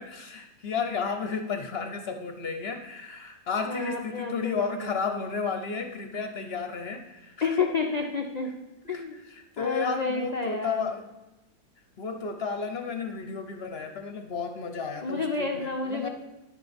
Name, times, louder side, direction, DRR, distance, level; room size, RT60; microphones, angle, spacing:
voice 1, 0.0-7.6 8.8-9.0 9.3-11.1 12.0-16.1, left 5 dB, 50° left, 5 dB, 0.7 m, -33 dB
voice 2, 3.7-4.9 7.4-8.5 8.9-9.2 9.6-10.9 15.0-16.1, left 4 dB, 85° left, 3 dB, 0.3 m, -30 dB
10.5 x 6.6 x 5.1 m, 1.0 s
omnidirectional pair, 1.8 m